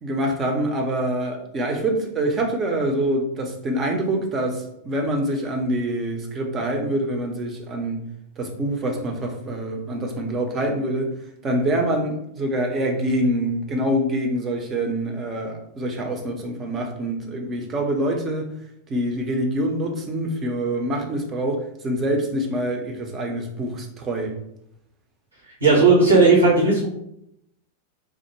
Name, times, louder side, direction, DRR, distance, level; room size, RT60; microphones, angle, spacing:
voice 1, 0.0-8.1 8.4-11.1 11.4-18.5 18.9-24.4, right 1 dB, 25° right, 0.7 m, -25 dB
voice 2, 25.6-26.9, right 3 dB, 80° right, 1.3 m, -15 dB
3.4 x 2.1 x 3.1 m
figure-of-eight pair, 90°, 0 cm